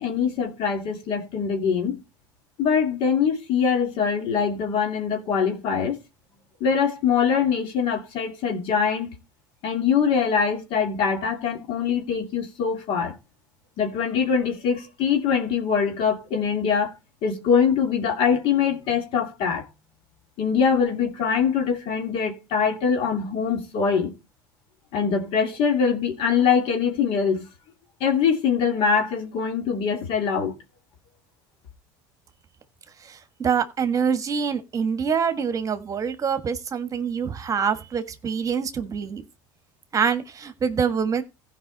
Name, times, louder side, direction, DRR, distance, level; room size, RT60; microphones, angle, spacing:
voice 1, 0.0-2.0 2.6-6.0 6.6-9.2 9.6-13.2 13.8-16.9 17.2-19.7 20.4-24.1 24.9-27.5 28.0-30.5, left 6 dB, 60° left, 2.6 m, -23 dB
voice 2, 33.0-39.2 39.9-41.2, right 6 dB, 35° right, 1.5 m, -25 dB
16.0 x 5.3 x 4.1 m
supercardioid pair, 100°, 10 cm